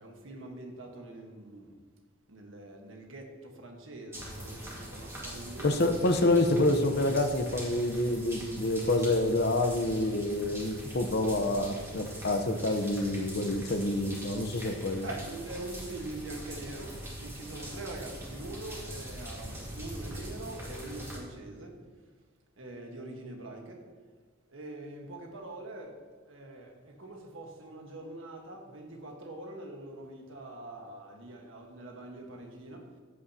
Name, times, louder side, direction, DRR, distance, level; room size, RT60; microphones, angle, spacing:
voice 1, 0.0-1.8 2.3-5.7 13.1-13.3 15.0-21.8 22.6-23.9 24.5-26.0 26.3-32.9, right 2 dB, 70° right, 3 dB, 1.4 m, -43 dB
sound 1, 4.1-21.2, equal, 15° right, 2.2 m, -42 dB
voice 2, 5.6-15.1, left 2 dB, 55° left, 7 dB, 0.8 m, -27 dB
14.5 x 8.7 x 2.8 m, 1.5 s
head